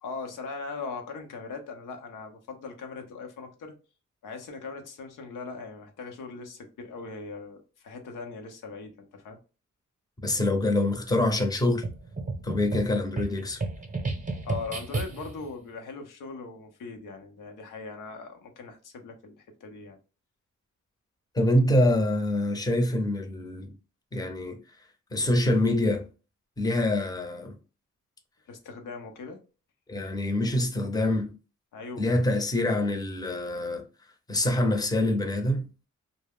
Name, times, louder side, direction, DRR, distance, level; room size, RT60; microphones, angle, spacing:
voice 1, 0.0-3.7 4.2-9.4 14.4-20.0 28.5-29.4 31.7-32.0, left 4 dB, 85° left, 0.7 m, -40 dB
voice 2, 10.2-11.9 12.4-13.6 21.3-23.7 24.1-24.6 25.1-26.1 26.6-27.5 29.9-31.3 32.0-33.8 34.3-35.7, left 1 dB, 10° left, 0.6 m, -25 dB
sound 1, 11.8-15.5, right 3 dB, 25° right, 0.7 m, -33 dB
2.3 x 2.0 x 3.4 m
cardioid pair, 75°, 31 cm